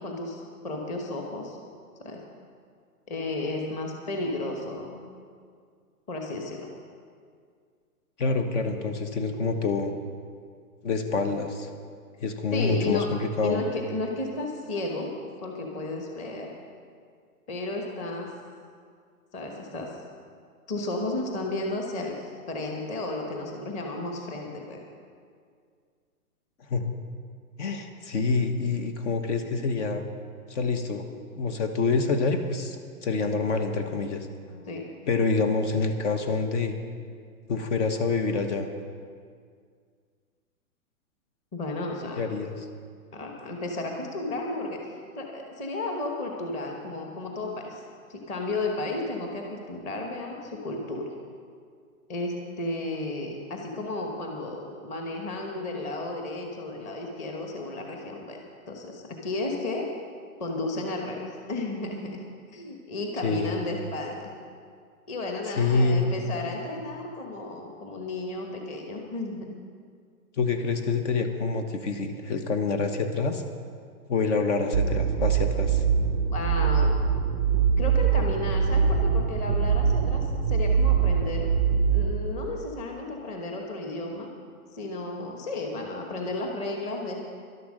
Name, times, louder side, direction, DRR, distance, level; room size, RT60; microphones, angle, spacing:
voice 1, 0.0-1.6 2.0-2.2 3.1-5.0 6.1-6.7 12.5-13.1 13.4-15.1 15.4-16.5 17.5-18.3 19.3-19.9 20.7-24.8 34.7-34.9 41.5-42.2 43.1-44.8 45.2-47.8 48.1-51.1 52.1-58.4 58.7-59.9 60.4-64.3 65.1-69.5 76.3-77.0 77.8-81.5 81.9-84.3 84.7-87.2, left 2 dB, 15° left, 1 dB, 1.1 m, -33 dB
voice 2, 8.2-9.9 10.8-11.7 12.2-13.6 26.7-26.9 27.6-30.0 30.5-31.1 31.3-32.8 33.0-34.7 35.1-36.7 37.5-38.7 42.2-42.7 63.2-63.6 65.5-66.1 70.4-73.4 74.1-75.8, left 4 dB, 50° left, 7 dB, 1.3 m, -27 dB
sound 1, 74.7-82.1, right 6 dB, 15° right, 0.4 m, -23 dB
12.0 x 11.5 x 6.5 m, 2.1 s
hypercardioid pair, 155°, 45 cm